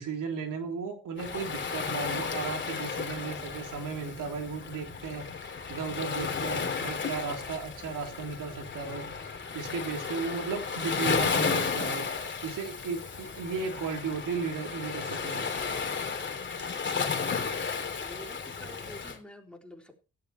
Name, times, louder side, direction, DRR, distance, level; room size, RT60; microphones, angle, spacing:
voice 1, 0.0-12.1 12.4-15.5, right 5 dB, 80° right, 3.3 m, -35 dB
Waves surf, 1.2-19.2, left 5 dB, 35° left, 3.0 m, -33 dB
voice 2, 18.0-19.9, left 1 dB, 5° left, 3.8 m, -49 dB
17.0 x 14.0 x 3.1 m
cardioid pair, 125°, 32 cm